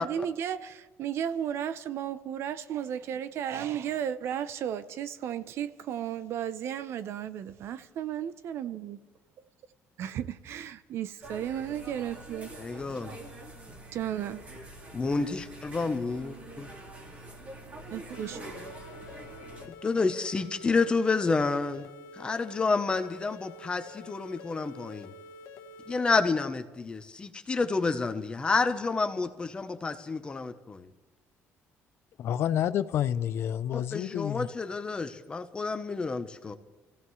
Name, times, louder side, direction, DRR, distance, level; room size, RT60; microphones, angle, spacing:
voice 1, 0.0-9.0 10.0-12.7 13.9-14.4 17.9-18.4, right 9 dB, 60° right, 0.7 m, -34 dB
sound 1, 11.2-19.7, right 2 dB, 30° right, 2.2 m, -45 dB
voice 2, 12.6-13.1 14.9-16.7 19.8-21.9 22.1-25.1 25.9-30.9 33.7-36.5, left 4 dB, 20° left, 0.8 m, -29 dB
sound 2, 18.1-26.1, left 2 dB, 90° left, 1.2 m, -48 dB
voice 3, 32.2-34.5, left 10 dB, 55° left, 0.5 m, -29 dB
29.0 x 16.0 x 3.2 m
cardioid pair, 160°, 5 cm